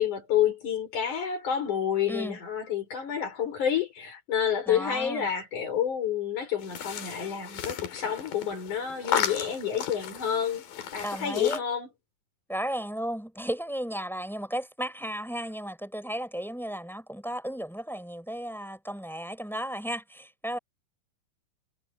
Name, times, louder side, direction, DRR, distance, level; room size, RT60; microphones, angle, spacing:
voice 1, 0.0-10.6 10.9-11.9, left 9 dB, 60° left, 6.6 m, -29 dB
voice 2, 4.7-5.3 11.0-11.6 12.5-20.6, equal, ahead, 4.2 m, -34 dB
sound 1, 6.6-11.6, left 8 dB, 85° left, 3.9 m, -34 dB
omnidirectional pair, 3.9 m